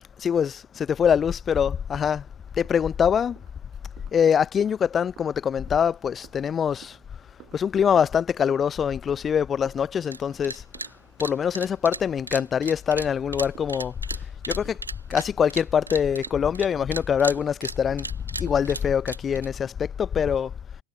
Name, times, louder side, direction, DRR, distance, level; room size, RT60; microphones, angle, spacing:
voice 1, 0.2-2.2 2.6-3.4 4.1-7.0 7.5-10.6 11.2-13.9 14.5-14.8 15.1-18.0 18.4-20.5, left 7 dB, 20° left, 0.4 m, -24 dB
sound 1, 1.9-18.6, right 17 dB, 35° right, 5.2 m, -55 dB
sound 2, 10.1-10.2 10.4-10.9 11.2-16.7 16.9-19.5, right 3 dB, 80° right, 0.8 m, -35 dB
figure-of-eight pair, 90°, 0 cm